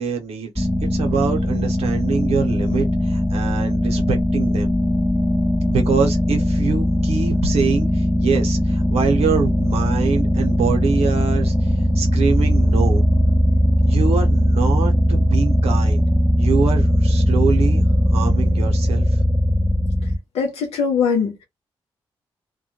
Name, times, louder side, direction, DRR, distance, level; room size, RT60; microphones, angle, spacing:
voice 1, 0.0-4.7 5.7-13.0 13.9-16.0 16.4-17.9 18.1-19.2, right 6 dB, 80° right, 0.8 m, -24 dB
sound 1, 0.6-20.2, equal, 5° left, 0.5 m, -19 dB
voice 2, 20.3-21.4, left 6 dB, 85° left, 0.5 m, -21 dB
2.2 x 2.1 x 2.9 m
supercardioid pair, 50°, 10 cm